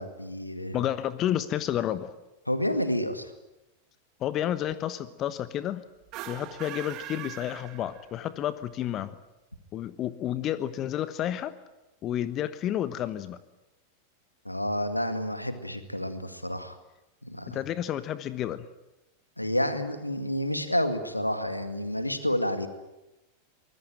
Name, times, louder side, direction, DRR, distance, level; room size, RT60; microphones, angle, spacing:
voice 1, 0.0-0.8 2.5-3.3 14.4-16.8 17.2-17.6 19.4-22.7, left 1 dB, 85° left, 9 dB, 2.1 m, -29 dB
voice 2, 0.7-2.1 4.2-5.8 6.3-9.2 9.7-11.5 12.0-13.4 17.5-18.7, left 11 dB, 35° left, 14 dB, 1.1 m, -30 dB
sound 1, 6.0-8.4, right 14 dB, 40° right, 1.6 m, -41 dB
24.0 x 20.5 x 9.0 m, 0.99 s
figure-of-eight pair, 90°, 0 cm